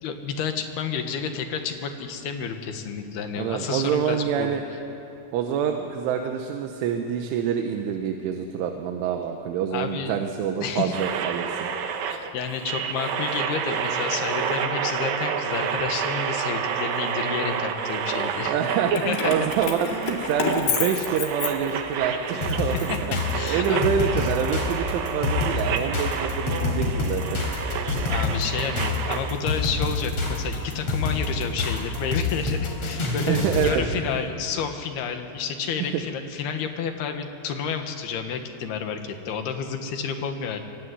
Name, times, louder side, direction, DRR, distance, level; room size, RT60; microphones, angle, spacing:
voice 1, 0.0-4.5 9.7-10.2 10.6-11.0 12.1-18.6 18.9-19.2 22.3-22.4 22.7-24.3 28.1-33.4 33.6-40.6, left 6 dB, 65° left, 6 dB, 3.3 m, -30 dB
voice 2, 3.4-4.6 5.3-11.7 18.5-22.9 23.5-27.4 33.3-34.2 35.8-36.0, right 8 dB, 85° right, 4 dB, 3.7 m, -26 dB
sound 1, 10.9-29.4, right 7 dB, 65° right, 2.5 m, -29 dB
Keys jangling, 18.9-22.1 22.5-23.8, left 7 dB, 80° left, 4.5 m, -30 dB
sound 2, 22.4-33.8, left 3 dB, 35° left, 5.0 m, -27 dB
25.5 x 23.0 x 9.6 m, 2.7 s
omnidirectional pair, 5.4 m